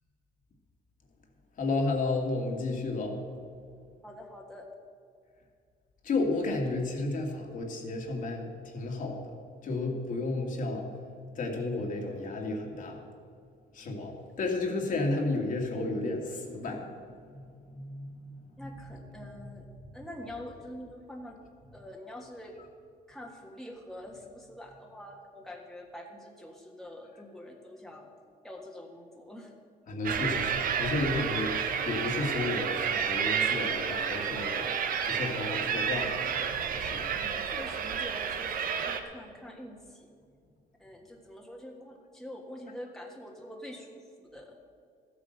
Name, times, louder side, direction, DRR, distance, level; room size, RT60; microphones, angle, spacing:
voice 1, 1.6-3.2 6.0-9.3 9.6-10.9 11.4-13.0 13.7-16.9 17.3-19.5 29.9-34.7 35.0-37.2, left 2 dB, 50° left, 1 dB, 2.2 m, -33 dB
voice 2, 4.0-4.7 18.6-19.7 19.9-21.4 21.7-22.6 23.1-28.1 28.4-29.5 37.1-40.1 40.8-44.6, left 1 dB, ahead, -1 dB, 1.6 m, -45 dB
sound 1, 30.0-39.0, right 7 dB, 55° right, 1.1 m, -30 dB
13.5 x 8.5 x 6.7 m, 2.2 s
cardioid pair, 110°, 17 cm